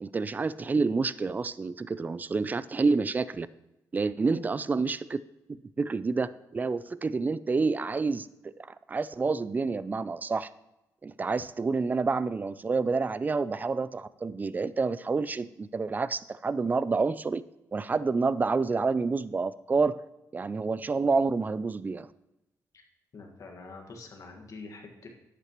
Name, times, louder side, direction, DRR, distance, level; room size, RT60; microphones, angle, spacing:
voice 1, 0.0-3.5 3.9-5.2 5.8-10.5 11.0-17.4 17.7-20.0 20.3-22.1, right 4 dB, 25° right, 16 dB, 0.4 m, -28 dB
voice 2, 4.2-4.6 22.7-22.8 23.1-25.1, left 3 dB, 55° left, 2 dB, 1.7 m, -45 dB
11.0 x 8.2 x 3.0 m, 0.95 s
cardioid pair, 90°, 7 cm